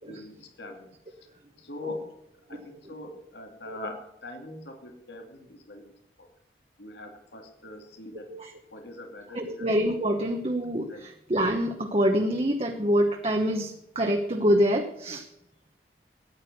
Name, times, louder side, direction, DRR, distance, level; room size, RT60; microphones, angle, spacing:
voice 1, 0.1-0.9 1.6-2.0 2.5-5.9 6.2-6.3 6.8-8.3 8.7-9.7 10.9-11.0, left 2 dB, 80° left, 4 dB, 2.6 m, -42 dB
voice 2, 9.3-15.2, equal, 35° right, 3 dB, 1.0 m, -26 dB
13.5 x 9.8 x 6.8 m, 0.85 s
head